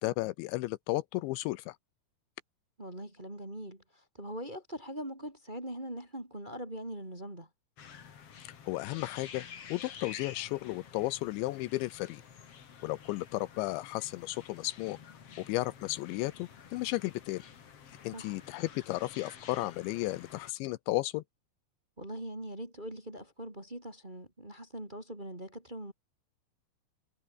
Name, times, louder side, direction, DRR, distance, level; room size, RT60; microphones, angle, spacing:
voice 1, 0.0-1.8 8.7-12.2 12.8-15.0 15.4-17.4 18.0-21.2, left 19 dB, 85° left, 2.9 m, -34 dB
voice 2, 2.8-7.5 18.1-18.4 22.0-25.9, right 1 dB, 10° right, 2.7 m, -42 dB
sound 1, 7.8-20.5, left 7 dB, 45° left, 2.3 m, -50 dB
omnidirectional pair, 5.4 m